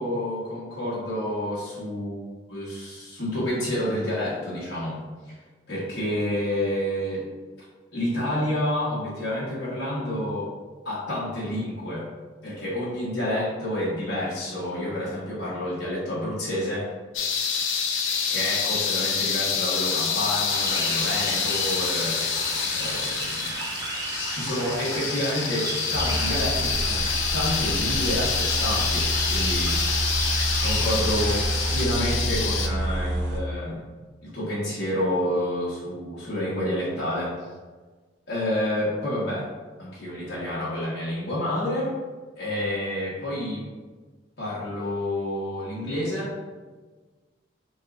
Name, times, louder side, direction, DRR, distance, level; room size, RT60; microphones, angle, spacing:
voice 1, 0.0-2.2 2.5-5.0 5.3-5.4 5.7-7.3 7.9-10.5 10.8-12.1 12.4-16.9 18.0-22.2 22.7-23.5 24.3-27.1 27.3-29.8 30.6-31.5 31.7-33.8 34.2-37.4 38.3-39.5 39.8-41.9 42.4-43.7 44.4-46.3, left 1 dB, 55° left, -9 dB, 1.2 m, -29 dB
sound 1, 17.1-32.7, left 6 dB, 75° left, 0.5 m, -27 dB
sound 2, 20.5-31.8, right 2 dB, 20° right, 0.6 m, -34 dB
sound 3, 25.9-33.4, right 1 dB, 70° right, 0.6 m, -28 dB
5.3 x 2.4 x 2.5 m, 1.4 s
head